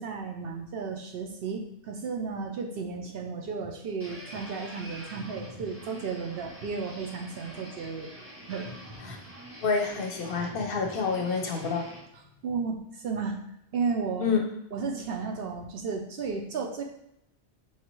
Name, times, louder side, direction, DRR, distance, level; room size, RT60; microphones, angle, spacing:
voice 1, 0.0-8.1 8.5-8.7 12.4-13.4 13.7-14.3 14.7-16.8, right 5 dB, 65° right, 2 dB, 0.7 m, -33 dB
sound 1, 4.0-12.0, equal, 15° right, 0.7 m, -45 dB
voice 2, 9.6-11.9 14.2-14.4, left 5 dB, 60° left, 3 dB, 0.7 m, -28 dB
4.7 x 2.8 x 3.0 m, 0.79 s
omnidirectional pair, 1.2 m